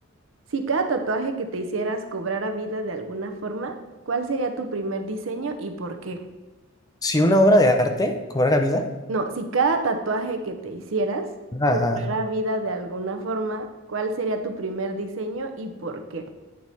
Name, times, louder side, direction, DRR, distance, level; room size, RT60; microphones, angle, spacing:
voice 1, 0.5-3.8 4.1-6.2 9.1-11.3 11.7-16.2, right 3 dB, 70° right, 6 dB, 0.8 m, -28 dB
voice 2, 7.0-8.9 11.5-12.0, left 1 dB, 20° left, 5 dB, 0.6 m, -19 dB
8.6 x 4.6 x 4.2 m, 1.2 s
head